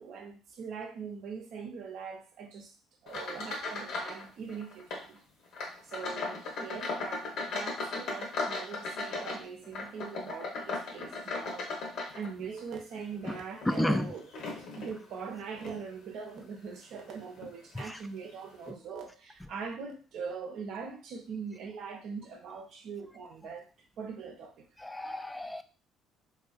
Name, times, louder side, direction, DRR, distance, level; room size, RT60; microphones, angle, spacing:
voice 1, 0.0-2.7 3.0-5.2 5.8-11.7 12.1-14.3 14.6-23.7 24.0-24.7, right 5 dB, 65° right, 0.6 m, -42 dB
sound 1, 3.1-4.2 4.5-5.1 5.5-12.6 13.1-15.0 15.6-15.8 16.4-16.5 17.4-17.5 17.8-17.9, left 3 dB, 65° left, 0.8 m, -37 dB
voice 2, 13.6-14.1 17.7-18.0 24.8-25.6, left 1 dB, 10° left, 0.3 m, -31 dB
2.5 x 2.3 x 2.4 m
hypercardioid pair, 60°, 0 cm